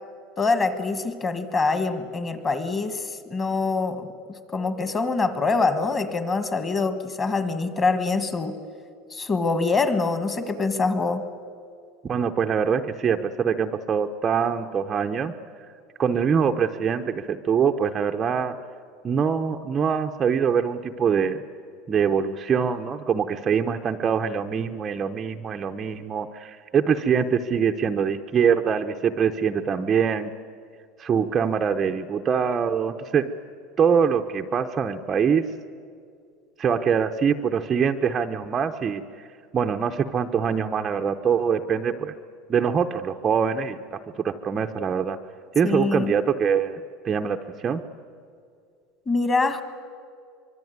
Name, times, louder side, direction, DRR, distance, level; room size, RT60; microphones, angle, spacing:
voice 1, 0.4-4.1 4.5-8.5 9.1-11.2 45.6-46.1 49.1-49.6, left 3 dB, 20° left, 10 dB, 1.6 m, -24 dB
voice 2, 12.0-15.3 16.0-18.6 19.0-21.4 21.9-30.3 31.0-33.3 33.8-35.5 36.6-39.0 39.5-42.1 42.5-45.2 45.5-47.8, right 7 dB, 20° right, 4 dB, 0.6 m, -24 dB
25.0 x 23.5 x 9.4 m, 2.4 s
cardioid pair, 180°, 0 cm